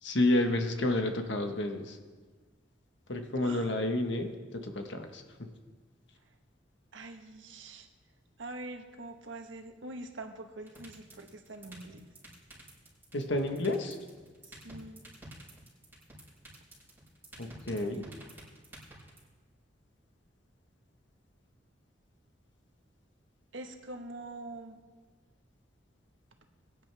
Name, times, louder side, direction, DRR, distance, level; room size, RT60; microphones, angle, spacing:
voice 1, 0.0-2.0 3.1-5.5 13.1-13.9 17.4-18.1, left 1 dB, 70° left, 5 dB, 1.4 m, -30 dB
voice 2, 3.4-3.7 6.9-7.9 8.4-12.0 14.4-15.0 17.7-18.1 23.5-24.8, right 2 dB, 85° right, 5 dB, 1.4 m, -44 dB
sound 1, 10.7-19.2, right 2 dB, 10° right, 5.3 m, -50 dB
22.5 x 10.5 x 3.5 m, 1.4 s
head